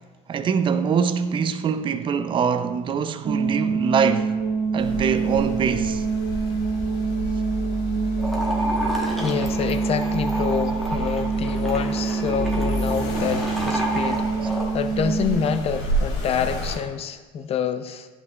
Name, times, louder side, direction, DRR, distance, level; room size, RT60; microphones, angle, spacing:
voice 1, 0.3-4.4 4.7-6.1, right 6 dB, 30° right, 0.4 m, -23 dB
sound 1, 3.2-15.6, right 5 dB, 50° right, 2.0 m, -26 dB
Accelerating revving vroom, 4.8-16.7, equal, 75° left, 1.5 m, -31 dB
sound 2, 8.2-14.7, equal, ahead, 1.1 m, -30 dB
voice 2, 9.2-18.1, left 7 dB, 35° left, 0.5 m, -27 dB
10.5 x 5.5 x 2.3 m
cardioid pair, 120°, 18 cm